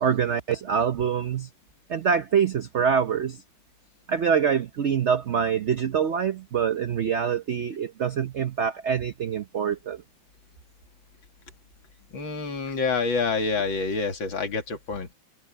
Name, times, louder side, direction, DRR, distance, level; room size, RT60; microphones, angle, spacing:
voice 1, 0.0-1.5 1.9-3.4 4.1-10.0, right 7 dB, 85° right, 0.6 m, -25 dB
voice 2, 12.1-15.1, left 4 dB, 80° left, 3.1 m, -27 dB
omnidirectional pair, 2.1 m